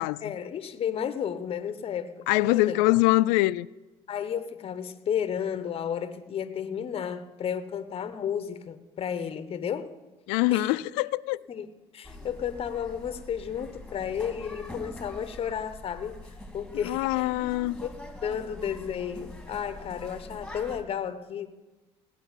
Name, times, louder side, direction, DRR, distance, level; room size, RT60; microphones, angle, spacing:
voice 1, 0.2-2.8 4.1-9.9 10.5-10.8 11.5-11.7 11.9-16.2 16.5-17.3 17.8-17.9 18.2-21.5, left 8 dB, 45° left, 1.1 m, -32 dB
voice 2, 2.3-3.7 10.3-11.4 16.8-17.8, left 19 dB, 85° left, 0.4 m, -24 dB
sound 1, 12.0-20.8, left 1 dB, 5° left, 2.2 m, -44 dB
17.0 x 6.0 x 9.7 m
supercardioid pair, 85°, 13 cm